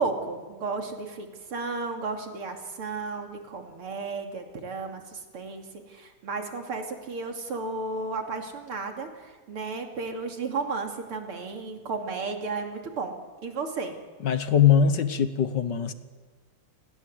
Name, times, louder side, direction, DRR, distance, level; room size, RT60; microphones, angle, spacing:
voice 1, 0.0-13.1 13.4-14.0, right 4 dB, 85° right, 4 dB, 3.6 m, -33 dB
voice 2, 14.2-15.9, left 8 dB, 60° left, 11 dB, 1.7 m, -21 dB
29.5 x 20.0 x 8.1 m, 1.4 s
omnidirectional pair, 2.4 m